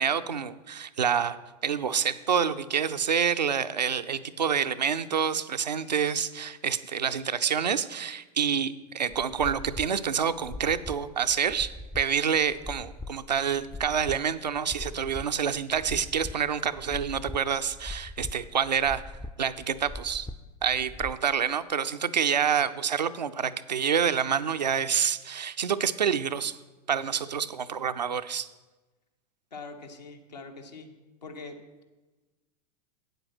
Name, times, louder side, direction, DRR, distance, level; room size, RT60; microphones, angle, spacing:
voice 1, 0.0-19.0 19.4-20.3 20.6-26.6 26.9-28.5, right 7 dB, 85° right, 11 dB, 0.5 m, -27 dB
sound 1, 9.1-21.2, left 2 dB, 10° left, 0.3 m, -41 dB
voice 2, 29.5-30.9 31.2-31.6, left 4 dB, 80° left, 4 dB, 1.3 m, -43 dB
8.5 x 8.0 x 6.0 m, 1.2 s
figure-of-eight pair, 95°, 21 cm